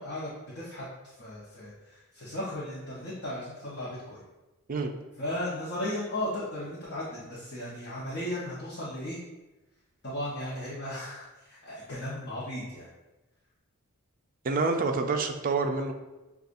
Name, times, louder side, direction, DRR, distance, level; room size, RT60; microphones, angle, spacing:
voice 1, 0.0-4.2 5.2-9.2 10.0-12.9, left 1 dB, 45° left, -9 dB, 0.9 m, -36 dB
voice 2, 14.4-15.9, right 4 dB, 40° right, 5 dB, 0.4 m, -27 dB
6.6 x 2.4 x 2.5 m, 1.1 s
head